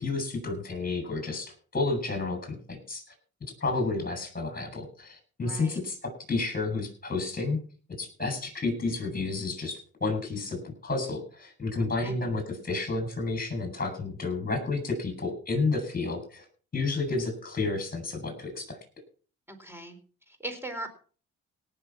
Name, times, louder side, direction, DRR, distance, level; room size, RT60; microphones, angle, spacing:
voice 1, 0.0-3.0 3.6-7.6 8.0-16.5 16.7-18.8, left 3 dB, 30° left, 4 dB, 7.9 m, -31 dB
voice 2, 5.4-5.8 12.0-12.2 19.5-20.0 20.3-20.9, right 1 dB, 10° right, 8 dB, 4.1 m, -39 dB
18.0 x 7.3 x 6.0 m, 0.42 s
cardioid pair, 90°, 30 cm